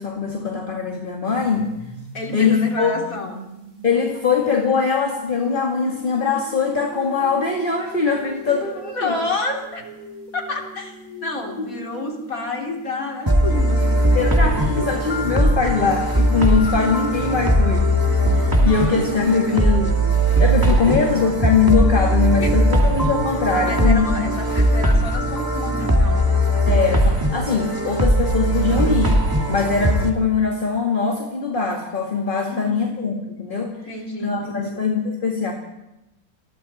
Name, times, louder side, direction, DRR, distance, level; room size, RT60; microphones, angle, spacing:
voice 1, 0.0-1.7 2.3-2.9 3.8-9.2 14.1-20.0 20.4-24.6 26.7-29.2 29.5-33.7 34.2-35.5, left 5 dB, 25° left, 0 dB, 2.4 m, -22 dB
sound 1, 1.3-19.0, equal, 80° right, 6.1 m, -40 dB
voice 2, 2.1-3.5 8.5-9.9 10.3-14.9 18.6-19.7 20.7-21.3 22.4-22.5 23.6-26.4 32.4-32.9 33.9-34.9, left 2 dB, 45° left, 0 dB, 3.9 m, -30 dB
sound 2, 13.3-30.1, right 1 dB, 10° right, 2.1 m, -19 dB
29.0 x 20.5 x 4.4 m, 0.93 s
omnidirectional pair, 2.0 m